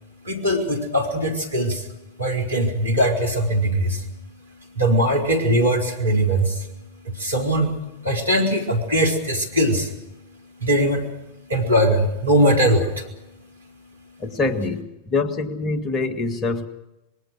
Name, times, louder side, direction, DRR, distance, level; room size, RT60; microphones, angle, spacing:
voice 1, 0.2-1.9 2.2-4.1 4.7-6.7 7.0-7.8 8.0-9.9 10.6-11.1 11.5-13.1, right 1 dB, 80° right, 0 dB, 4.3 m, -20 dB
voice 2, 14.2-16.7, left 3 dB, 30° left, 9 dB, 1.8 m, -25 dB
25.5 x 22.0 x 6.4 m, 0.94 s
figure-of-eight pair, 90°, 0 cm